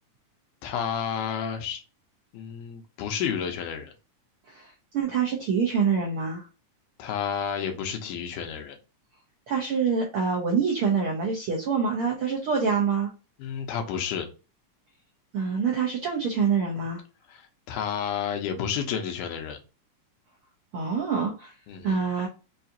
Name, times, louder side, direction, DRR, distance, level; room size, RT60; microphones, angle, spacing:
voice 1, 0.6-1.8 2.3-3.9 7.0-8.8 13.4-14.3 17.3-19.6 21.7-22.0, left 7 dB, 80° left, 2.3 m, -31 dB
voice 2, 4.5-6.5 9.5-13.1 15.3-17.0 20.7-21.5 21.8-22.3, right 5 dB, 75° right, 1.2 m, -26 dB
5.6 x 2.4 x 2.7 m
omnidirectional pair, 3.6 m